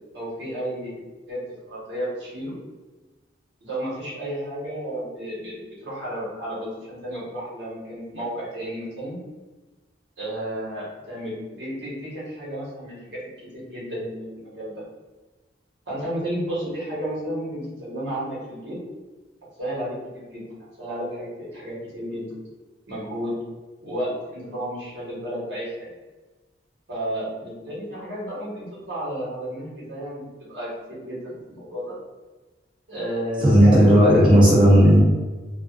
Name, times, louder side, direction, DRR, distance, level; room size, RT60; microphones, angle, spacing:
voice 1, 0.1-1.0 1.3-1.4 1.7-2.5 3.6-9.2 10.2-14.7 15.9-18.8 19.6-20.4 20.8-22.3 22.9-23.4 23.8-25.9 26.9-32.0 32.9-34.2 34.5-35.0, equal, 80° right, -7 dB, 1.2 m, -32 dB
voice 2, 33.4-35.0, equal, 25° right, -6 dB, 0.6 m, -13 dB
2.4 x 2.3 x 2.4 m, 1.2 s
head